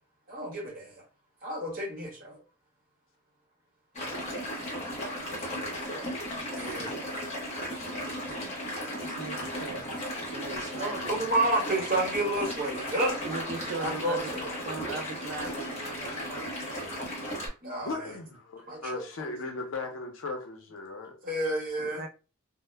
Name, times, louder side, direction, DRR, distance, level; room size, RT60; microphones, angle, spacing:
voice 1, 0.3-0.9 1.4-2.4 6.5-6.9 10.8-13.1 13.8-14.5 17.6-17.9 18.7-19.0 21.2-22.1, right 1 dB, 45° right, 1.1 m, -30 dB
sound 1, 3.9-17.5, equal, 30° left, 0.8 m, -35 dB
voice 2, 9.0-9.9 10.3-11.3 13.2-14.3 14.6-17.0 21.8-22.1, right 4 dB, 60° right, 0.4 m, -40 dB
voice 3, 17.8-21.2, left 3 dB, 70° left, 0.5 m, -37 dB
2.0 x 2.0 x 3.2 m
head